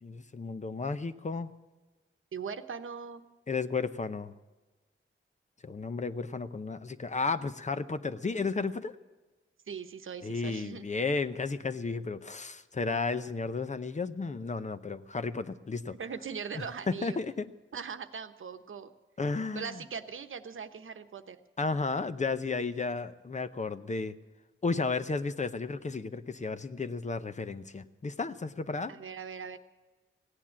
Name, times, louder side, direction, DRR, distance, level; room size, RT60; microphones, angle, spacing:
voice 1, 0.0-1.5 3.5-4.3 5.6-8.9 10.2-16.0 16.9-17.5 19.2-19.7 21.6-24.2 24.6-28.9, left 4 dB, 35° left, 12 dB, 0.7 m, -33 dB
voice 2, 2.3-3.2 9.7-10.9 15.9-17.2 17.7-18.9 19.5-21.4 28.9-29.6, right 6 dB, 75° right, 9 dB, 1.0 m, -40 dB
16.5 x 9.9 x 8.5 m, 1.2 s
wide cardioid pair, 130°, 21 cm